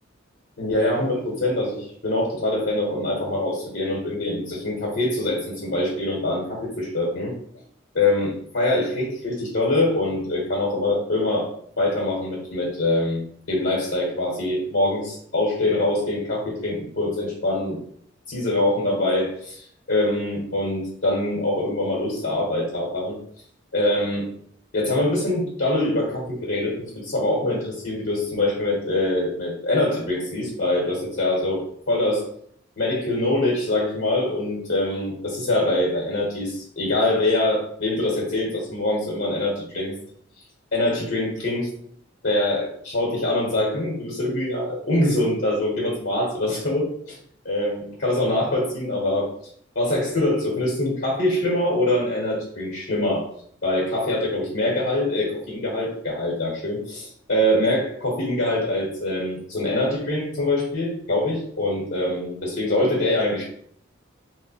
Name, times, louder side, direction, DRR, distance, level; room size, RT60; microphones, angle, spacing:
voice 1, 0.6-7.3 7.9-11.5 11.8-17.8 18.3-23.1 23.7-24.3 24.7-32.2 32.8-39.9 40.7-41.7 42.2-47.2 47.4-49.3 49.7-53.3 53.6-63.4, left 1 dB, 60° left, -3 dB, 1.1 m, -24 dB
3.2 x 2.1 x 4.0 m, 0.64 s
head